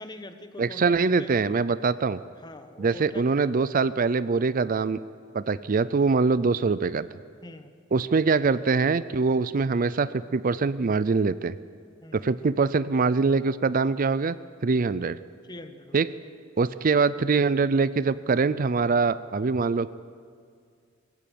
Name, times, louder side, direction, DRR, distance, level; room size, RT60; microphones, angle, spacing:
voice 1, 0.0-1.5 2.4-3.2 7.4-7.7 12.0-12.2 15.5-16.1, left 1 dB, 20° left, 9 dB, 1.2 m, -43 dB
voice 2, 0.6-2.2 2.8-5.0 5.3-7.1 7.9-11.5 12.1-14.4 14.6-15.2 15.9-16.1 16.6-19.9, right 4 dB, 45° right, 16 dB, 0.5 m, -23 dB
20.5 x 15.5 x 9.3 m, 2.1 s
head